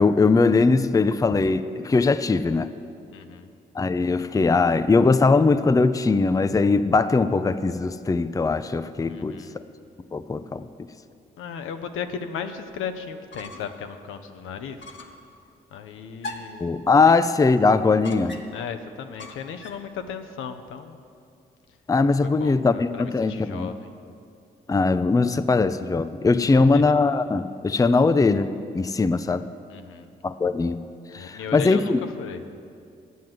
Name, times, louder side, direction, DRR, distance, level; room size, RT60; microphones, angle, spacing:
voice 1, 0.0-2.7 3.7-9.4 10.1-10.7 16.6-18.4 21.9-23.7 24.7-28.5 28.7-29.5 30.2-30.8 31.1-32.0, left 3 dB, 15° left, 12 dB, 0.5 m, -20 dB
voice 2, 3.1-3.5 9.1-9.6 11.4-14.8 15.7-17.1 18.5-21.0 22.2-23.9 26.4-26.8 29.7-30.1 31.2-32.6, left 7 dB, 75° left, 8 dB, 0.7 m, -36 dB
sound 1, 13.3-13.8 14.2-14.3 14.8-15.2 16.2-16.7 18.0-18.7 19.2-19.9, left 2 dB, 60° left, 1.1 m, -40 dB
9.4 x 7.4 x 7.7 m, 2.5 s
hypercardioid pair, 45°, 21 cm